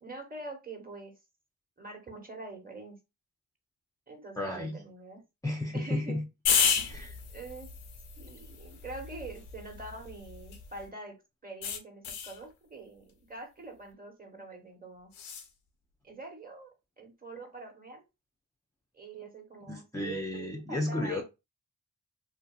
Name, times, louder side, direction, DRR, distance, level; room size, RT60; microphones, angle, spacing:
voice 1, 0.0-1.1 1.8-3.0 4.1-5.2 5.7-6.2 7.3-7.7 8.2-11.1 11.4-15.1 16.0-18.0 18.9-21.2, right 3 dB, 20° right, 1.1 m, -44 dB
voice 2, 4.4-4.8 5.4-6.2 6.8-7.2 19.7-21.2, left 1 dB, 5° left, 0.5 m, -33 dB
sound 1, 6.5-10.9 11.6-12.4 15.1-15.5, left 7 dB, 80° left, 0.7 m, -32 dB
2.7 x 2.4 x 2.3 m
supercardioid pair, 45°, 47 cm